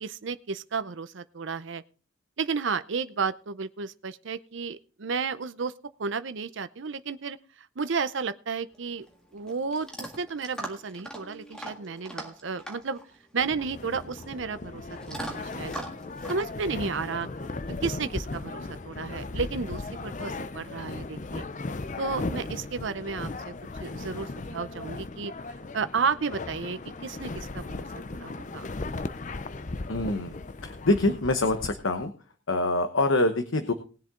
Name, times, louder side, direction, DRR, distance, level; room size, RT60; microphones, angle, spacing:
voice 1, 0.0-1.8 2.4-5.7 6.0-9.1 9.3-13.0 13.3-15.8 16.3-17.3 17.7-21.4 22.0-23.5 23.8-25.3 25.7-28.7, right 5 dB, 70° right, 13 dB, 0.6 m, -32 dB
Chewing mastication / Dog, 8.7-17.8, right 1 dB, 5° left, 1.8 m, -43 dB
sound 1, 13.4-32.1, left 3 dB, 40° left, 0.6 m, -37 dB
voice 2, 29.9-30.4 30.6-32.1 32.5-33.7, left 2 dB, 85° left, 7 dB, 1.1 m, -25 dB
19.5 x 7.4 x 3.8 m, 0.38 s
head